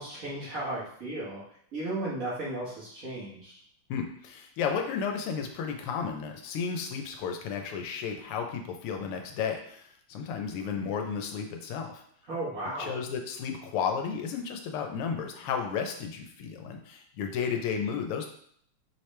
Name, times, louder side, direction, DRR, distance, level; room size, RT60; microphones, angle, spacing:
voice 1, 0.0-1.4 1.7-3.5 12.3-13.0, right 1 dB, 45° right, -7 dB, 1.6 m, -35 dB
voice 2, 3.9-12.0 12.8-18.3, left 6 dB, 90° left, 4 dB, 1.6 m, -33 dB
5.2 x 3.0 x 3.2 m, 0.64 s
omnidirectional pair, 2.4 m